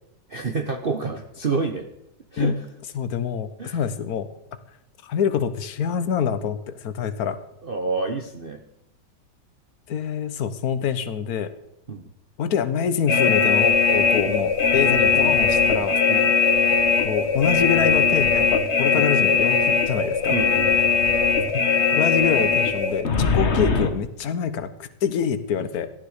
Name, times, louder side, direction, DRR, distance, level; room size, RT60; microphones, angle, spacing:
voice 1, 0.3-1.8 2.3-2.6 3.6-3.8 7.6-8.6 11.9-12.1 14.3-14.4 14.8-15.0 16.1-16.3 18.9-19.1 20.3-20.8 23.4-23.5, right 4 dB, 35° right, 5 dB, 1.0 m, -28 dB
voice 2, 2.9-4.3 5.0-7.4 9.9-11.5 12.4-16.0 17.0-20.3 21.5-25.9, left 7 dB, 55° left, 11 dB, 1.5 m, -26 dB
sound 1, 13.1-23.9, left 5 dB, 40° left, 1.5 m, -20 dB
18.0 x 12.5 x 5.0 m, 0.83 s
omnidirectional pair, 2.0 m